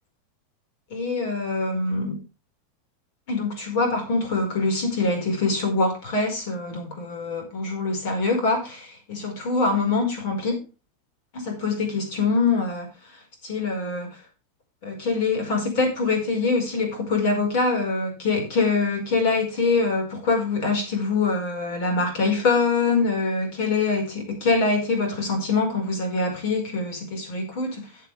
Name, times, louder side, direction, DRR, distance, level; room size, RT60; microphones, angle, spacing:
voice 1, 0.9-2.2 3.3-10.6 11.3-12.9 13.4-14.2 14.8-27.8, left 3 dB, 45° left, 3 dB, 5.0 m, -24 dB
14.0 x 7.6 x 3.4 m, 0.30 s
supercardioid pair, 175°, 0 cm